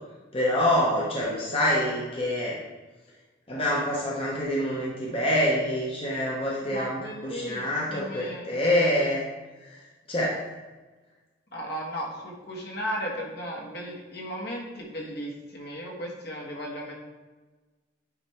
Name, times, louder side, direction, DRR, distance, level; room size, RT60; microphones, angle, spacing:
voice 1, 0.3-2.6 3.5-9.2 9.6-9.8 10.1-10.4, left 1 dB, 30° left, -5 dB, 1.0 m, -26 dB
voice 2, 6.6-8.5 11.5-17.0, equal, 55° left, -2 dB, 1.5 m, -35 dB
9.3 x 3.3 x 4.4 m, 1.2 s
head